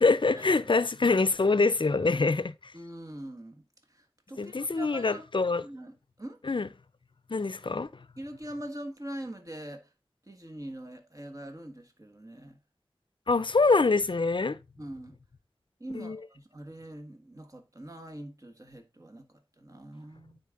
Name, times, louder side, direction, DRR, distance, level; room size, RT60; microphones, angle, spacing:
voice 1, 0.0-2.7 4.4-5.6 6.4-6.7 7.3-7.9 13.3-14.6 15.9-16.2, left 3 dB, 55° left, 0.5 m, -25 dB
voice 2, 2.7-5.2 5.6-6.4 8.2-9.9 10.3-12.6 14.8-15.2 15.8-20.4, right 1 dB, 35° right, 1.5 m, -43 dB
9.4 x 4.1 x 3.6 m
wide cardioid pair, 55°, 10 cm